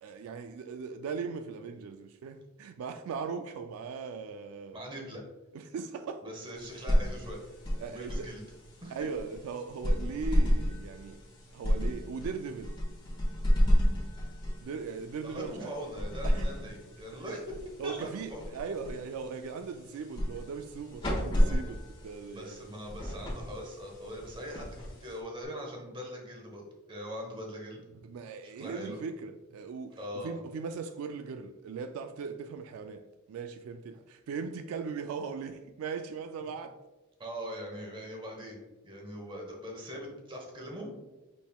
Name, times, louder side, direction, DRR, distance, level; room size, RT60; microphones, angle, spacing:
voice 1, 0.0-4.8 5.5-6.2 7.8-8.3 8.9-11.2 11.5-12.8 14.6-15.7 16.2-16.5 17.3-17.4 17.8-22.6 28.0-36.8, right 5 dB, 75° right, 0.3 m, -39 dB
voice 2, 4.7-5.2 6.2-7.4 7.8-8.4 8.8-9.0 15.2-17.4 17.8-18.4 22.3-27.8 28.6-29.0 30.0-30.4 37.2-38.6 38.8-40.9, equal, 25° right, 1.0 m, -41 dB
sound 1, 6.6-25.4, equal, 25° left, 1.2 m, -32 dB
5.4 x 4.1 x 2.2 m
head